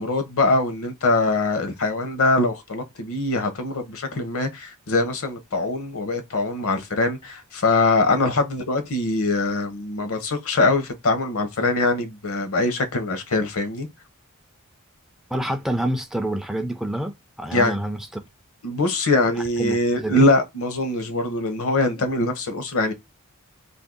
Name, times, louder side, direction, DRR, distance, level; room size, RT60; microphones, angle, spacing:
voice 1, 0.0-13.9 17.5-17.7 18.6-22.9, left 2 dB, 70° left, 0.8 m, -23 dB
voice 2, 15.3-18.2 19.6-20.3, right 1 dB, ahead, 0.3 m, -27 dB
2.6 x 2.6 x 3.6 m
head